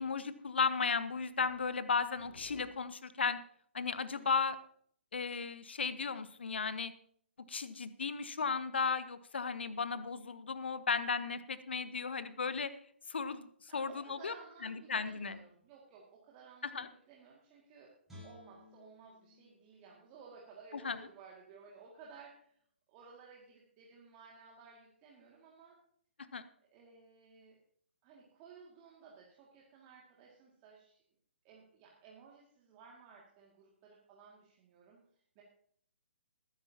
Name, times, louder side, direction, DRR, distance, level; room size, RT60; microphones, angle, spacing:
voice 1, 0.0-3.4 3.7-4.6 5.1-6.9 7.5-12.7 13.1-13.5 13.7-14.3 14.6-15.4 16.6-16.9 20.7-21.1 26.3-26.4, left 5 dB, 60° left, 14 dB, 0.9 m, -35 dB
voice 2, 13.7-17.9 18.2-22.5 22.9-25.8 26.7-27.6 28.0-31.0 31.4-35.0 35.4-35.5, right 5 dB, 25° right, -3 dB, 2.2 m, -57 dB
Guitar, 18.1-21.2 21.6-21.8, left 2 dB, 5° right, 5.7 m, -58 dB
19.5 x 10.0 x 2.8 m, 0.63 s
figure-of-eight pair, 130°, 7 cm